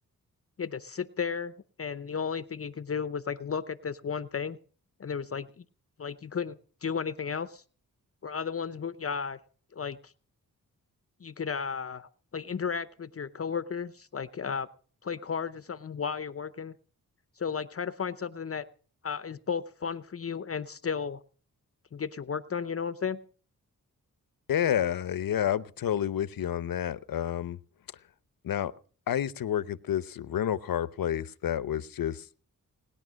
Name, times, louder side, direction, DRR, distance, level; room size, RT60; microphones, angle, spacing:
voice 1, 0.6-1.5 1.8-4.6 5.0-5.6 6.0-7.6 8.2-9.4 9.7-10.1 11.2-14.7 15.0-16.7 17.4-18.7 19.0-21.2 21.9-23.2, left 6 dB, 40° left, 14 dB, 0.7 m, -34 dB
voice 2, 24.5-27.6 28.4-28.7 29.1-32.2, left 10 dB, 85° left, 16 dB, 0.9 m, -29 dB
20.0 x 10.5 x 6.3 m, 0.42 s
wide cardioid pair, 90°, 34 cm